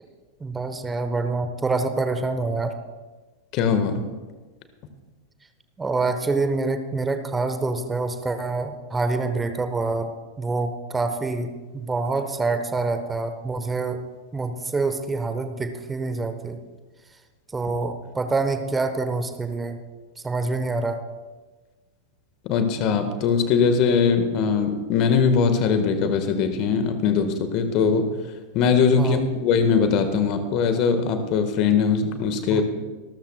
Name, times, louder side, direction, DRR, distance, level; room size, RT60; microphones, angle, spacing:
voice 1, 0.4-2.7 5.8-10.1 10.4-14.0 14.3-16.6 17.5-19.8 20.2-21.0 29.0-29.2 32.5-32.6, right 3 dB, 15° right, 8 dB, 1.1 m, -26 dB
voice 2, 3.5-4.0 22.4-28.1 28.5-32.6, left 6 dB, 40° left, 9 dB, 1.6 m, -21 dB
25.5 x 13.0 x 2.4 m, 1.3 s
figure-of-eight pair, 90°, 0 cm